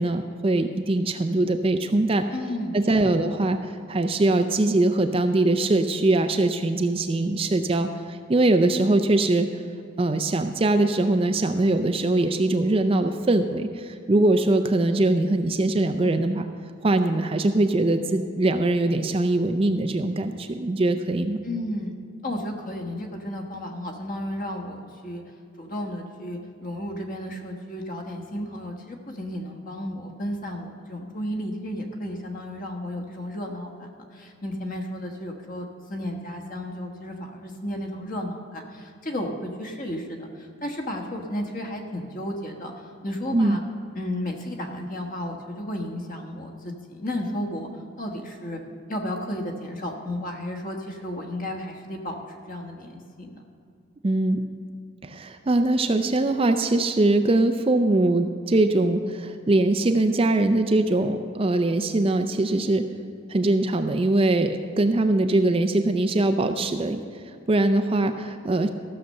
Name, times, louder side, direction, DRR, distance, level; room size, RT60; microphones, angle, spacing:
voice 1, 0.0-2.2 2.7-9.5 10.0-16.5 16.8-21.4 43.3-43.6 54.0-54.4 55.0-62.9 63.3-68.7, right 2 dB, 25° right, 7 dB, 0.4 m, -22 dB
voice 2, 2.3-3.1 21.4-21.9 22.2-25.2 25.6-43.6 43.9-48.6 48.9-53.4, left 1 dB, 40° left, 3 dB, 1.3 m, -33 dB
14.0 x 6.6 x 6.5 m, 2.5 s
head